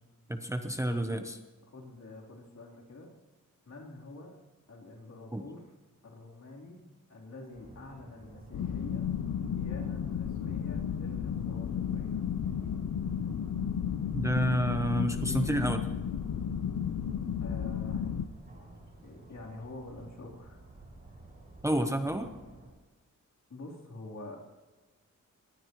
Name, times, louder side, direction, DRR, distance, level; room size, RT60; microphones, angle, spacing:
voice 1, 0.3-1.4 5.3-5.4 14.1-15.8 21.6-22.3, right 1 dB, 10° right, 6 dB, 0.8 m, -29 dB
voice 2, 1.7-3.1 3.7-4.4 4.7-5.7 6.0-9.1 9.4-12.2 15.3-15.6 17.4-18.1 19.0-20.6 23.5-24.4, left 2 dB, 60° left, -1 dB, 3.5 m, -46 dB
sound 1, 7.5-22.7, right 2 dB, 30° right, 5.8 m, -52 dB
sound 2, 8.5-18.3, left 8 dB, 85° left, 0.7 m, -33 dB
22.0 x 18.0 x 3.1 m, 1.2 s
wide cardioid pair, 170°, 31 cm